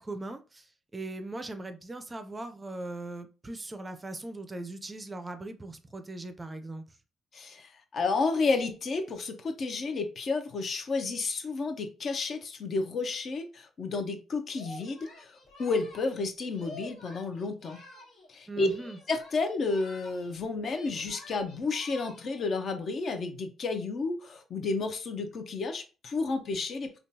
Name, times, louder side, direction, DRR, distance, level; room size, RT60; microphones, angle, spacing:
voice 1, 0.0-6.8 18.5-19.0, right 2 dB, 20° right, 9 dB, 0.4 m, -39 dB
voice 2, 7.3-17.8 18.3-18.7 19.1-27.0, left 3 dB, 55° left, 7 dB, 0.6 m, -31 dB
Singing, 14.5-18.3 18.6-20.4 20.6-22.5, left 1 dB, 75° left, 1.5 m, -49 dB
3.6 x 2.3 x 2.7 m, 0.33 s
cardioid pair, 90°, 0 cm